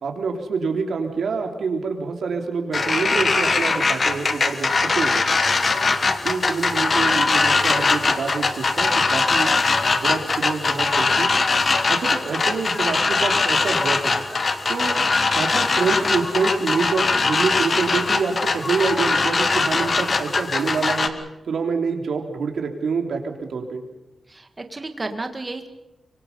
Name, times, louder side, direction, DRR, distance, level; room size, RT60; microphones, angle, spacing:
voice 1, 0.0-5.3 6.2-9.5 9.9-11.3 11.9-14.2 14.7-15.0 15.3-21.1 21.4-23.8, right 4 dB, 70° right, 3 dB, 3.2 m, -26 dB
sound 1, 2.7-21.1, left 3 dB, 35° left, 1.3 m, -21 dB
voice 2, 5.8-6.3 11.6-11.8 24.3-25.7, right 2 dB, 20° right, 6 dB, 1.7 m, -33 dB
24.5 x 23.5 x 5.5 m, 0.95 s
wide cardioid pair, 160°, 0 cm